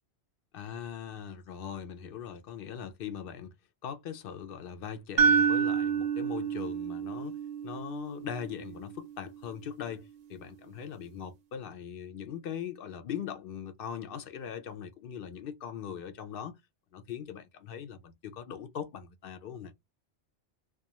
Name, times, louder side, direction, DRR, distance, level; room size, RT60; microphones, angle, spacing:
voice 1, 0.5-3.5 3.8-7.4 7.6-16.5 16.9-19.7, left 8 dB, 60° left, 0.7 m, -40 dB
sound 1, 5.2-9.2, right 6 dB, 55° right, 0.5 m, -29 dB
2.3 x 2.3 x 2.8 m
omnidirectional pair, 1.2 m